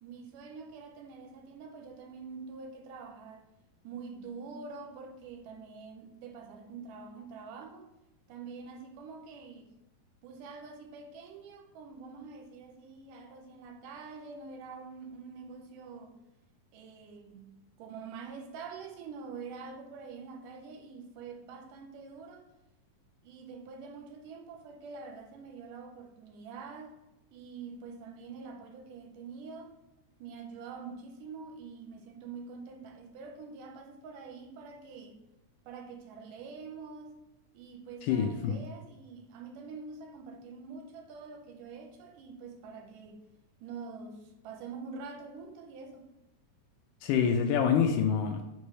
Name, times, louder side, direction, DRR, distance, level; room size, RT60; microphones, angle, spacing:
voice 1, 0.0-3.5 3.8-7.9 8.3-9.7 10.2-16.2 16.7-22.5 23.2-27.0 27.3-29.7 30.2-35.2 35.7-37.2 37.5-43.2 43.6-46.1, right 5 dB, 80° right, 2.1 m, -46 dB
voice 2, 38.0-38.6 47.0-48.4, left 7 dB, 80° left, 1.9 m, -26 dB
6.0 x 3.2 x 5.4 m
omnidirectional pair, 4.0 m